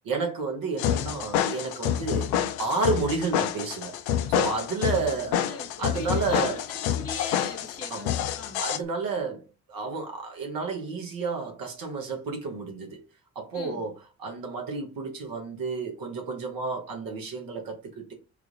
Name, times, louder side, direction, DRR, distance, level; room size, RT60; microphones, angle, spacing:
voice 1, 0.0-2.3 2.6-3.9 4.3-5.4 5.8-6.6 7.9-8.1 8.6-13.0 13.3-13.9 14.2-18.1, right 3 dB, 60° right, 1.2 m, -31 dB
sound 1, 0.8-8.8, left 10 dB, 70° left, 0.5 m, -28 dB
voice 2, 4.9-8.6 13.5-13.8, left 3 dB, 35° left, 1.3 m, -41 dB
3.3 x 2.4 x 3.1 m
hypercardioid pair, 40°, 40 cm